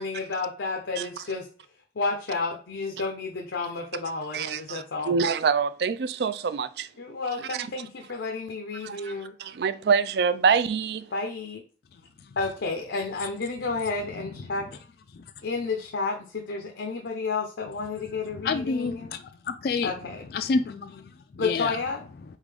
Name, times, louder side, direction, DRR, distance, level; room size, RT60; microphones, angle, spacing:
voice 1, 0.0-1.5 1.9-5.2 7.0-9.3 11.1-11.6 12.4-14.7 15.4-19.1 19.8-20.2 21.4-22.0, left 3 dB, 85° left, 0.6 m, -31 dB
voice 2, 4.3-6.9 8.8-9.1 9.4-11.1, right 5 dB, 60° right, 0.3 m, -25 dB
voice 3, 18.3-19.9 20.3-21.8, left 4 dB, 55° left, 0.3 m, -29 dB
4.0 x 3.6 x 3.3 m
head